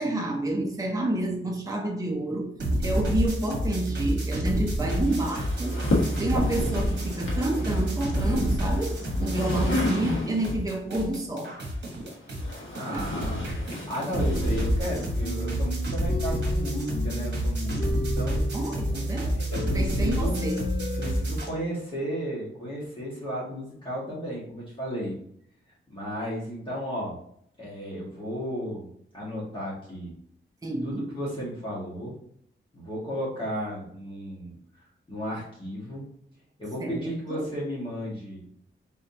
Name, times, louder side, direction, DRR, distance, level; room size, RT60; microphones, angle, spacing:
voice 1, 0.0-2.5 2.8-5.8 6.2-11.5 12.9-13.3 18.5-19.4 19.7-20.7 30.6-31.2 36.8-37.5, right 1 dB, 15° right, 1 dB, 0.7 m, -29 dB
sound 1, 2.6-10.2 10.4-21.5, equal, 55° right, 1.2 m, -28 dB
sound 2, 5.0-10.6 11.7-15.2, left 2 dB, 70° left, 1.3 m, -33 dB
voice 2, 12.7-13.5 13.9-18.4 19.5-20.4 21.0-25.1 25.9-27.1 27.6-28.8 29.1-30.1 30.8-32.1 32.7-34.6 35.1-36.1 36.6-38.4, equal, 25° left, -8 dB, 1.7 m, -34 dB
sound 3, 14.4-21.2, left 2 dB, 55° left, 0.6 m, -35 dB
4.2 x 3.7 x 2.8 m, 0.68 s
wide cardioid pair, 140°, 21 cm